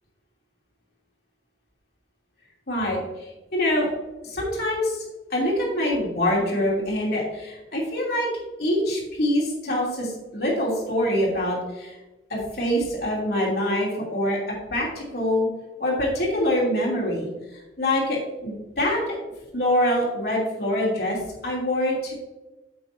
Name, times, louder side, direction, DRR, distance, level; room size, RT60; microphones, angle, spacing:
voice 1, 2.7-3.0 3.5-3.9 4.2-8.3 8.6-12.0 12.3-15.5 15.8-19.1 19.5-21.2 21.4-22.1, left 1 dB, 60° left, -4 dB, 2.9 m, -25 dB
8.7 x 7.7 x 2.7 m, 1.1 s
head